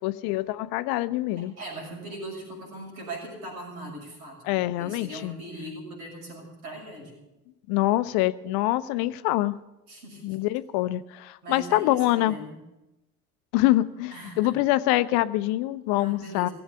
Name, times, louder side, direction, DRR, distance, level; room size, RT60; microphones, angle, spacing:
voice 1, 0.0-1.5 4.4-5.4 7.7-9.5 10.2-12.4 13.5-16.5, left 16 dB, 55° left, 15 dB, 0.7 m, -25 dB
voice 2, 1.4-7.2 9.9-10.4 11.4-12.6 14.1-14.5 16.0-16.5, right 1 dB, 75° right, -3 dB, 6.4 m, -40 dB
17.0 x 8.0 x 8.6 m, 0.99 s
figure-of-eight pair, 60°, 45 cm